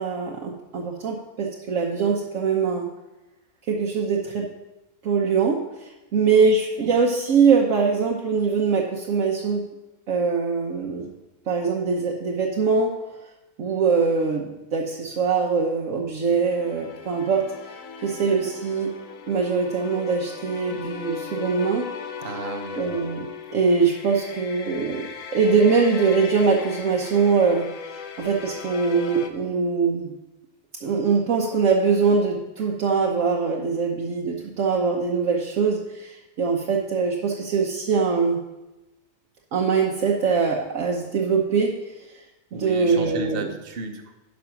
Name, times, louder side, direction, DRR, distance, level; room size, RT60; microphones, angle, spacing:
voice 1, 0.0-2.9 3.7-4.5 5.0-9.6 10.1-11.1 11.5-13.0 13.6-17.4 18.0-18.9 19.3-21.9 22.8-30.2 30.8-38.4 39.5-42.2 42.5-43.5, right 5 dB, 70° right, -1 dB, 1.2 m, -22 dB
sound 1, 16.4-29.3, left 6 dB, 75° left, 1.2 m, -37 dB
voice 2, 22.2-22.9 42.5-44.1, right 3 dB, 45° right, 5 dB, 1.1 m, -33 dB
10.5 x 5.6 x 5.9 m, 1.0 s
omnidirectional pair, 1.4 m